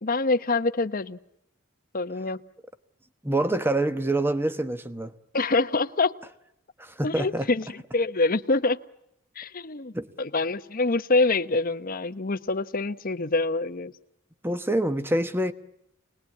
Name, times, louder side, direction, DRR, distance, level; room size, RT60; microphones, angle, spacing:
voice 1, 0.0-1.2 1.9-2.4 5.3-6.1 7.0-8.8 9.4-13.9, left 3 dB, 40° left, 0.9 m, -25 dB
voice 2, 3.2-5.1 6.8-7.5 9.9-10.1 14.4-15.5, right 1 dB, 10° right, 1.1 m, -26 dB
27.0 x 20.0 x 8.5 m
head